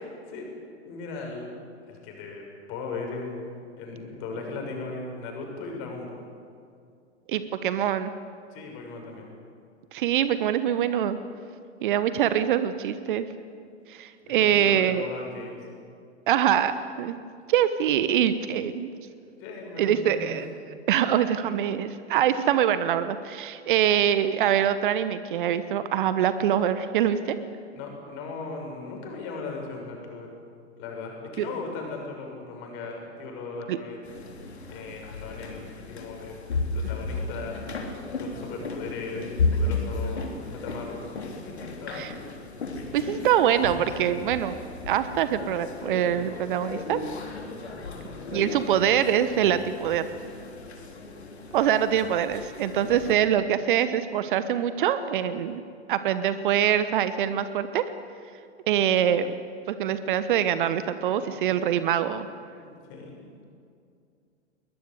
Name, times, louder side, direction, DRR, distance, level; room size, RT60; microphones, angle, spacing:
voice 1, 0.8-1.5 1.9-6.1 8.5-9.3 14.2-15.7 19.4-20.3 27.7-30.3 30.8-34.0 34.7-36.4 36.7-37.7 38.2-41.1 41.4-42.1 47.9-48.2 61.1-61.6 62.5-63.4, left 3 dB, 35° left, 1 dB, 6.7 m, -38 dB
voice 2, 7.3-8.1 9.9-11.2 11.8-13.3 13.9-15.0 16.3-17.2 17.5-18.9 19.8-20.5 20.9-27.4 31.4-31.5 33.7-33.8 41.9-42.1 42.9-44.6 44.9-47.0 48.3-50.1 51.5-55.6 55.9-57.9 58.7-59.3 59.7-62.3, right 10 dB, 45° right, 13 dB, 1.1 m, -24 dB
sound 1, 34.0-53.1, left 3 dB, 65° left, 3.6 m, -34 dB
22.5 x 20.5 x 8.3 m, 2.4 s
figure-of-eight pair, 100°, 35 cm